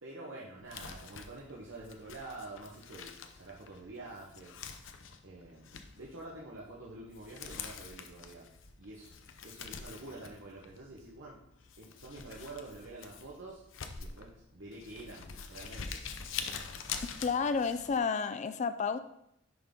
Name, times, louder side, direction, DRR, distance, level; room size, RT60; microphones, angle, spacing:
voice 1, 0.0-4.5 5.2-8.5 8.8-9.1 9.4-11.4 11.8-13.6 14.0-16.0, right 2 dB, 70° right, -5 dB, 1.1 m, -47 dB
Crumpling crinkling, 0.6-18.0, left 6 dB, 75° left, 0.6 m, -46 dB
voice 2, 17.2-19.0, left 5 dB, 40° left, 11 dB, 0.3 m, -31 dB
10.5 x 3.9 x 3.6 m, 0.77 s
head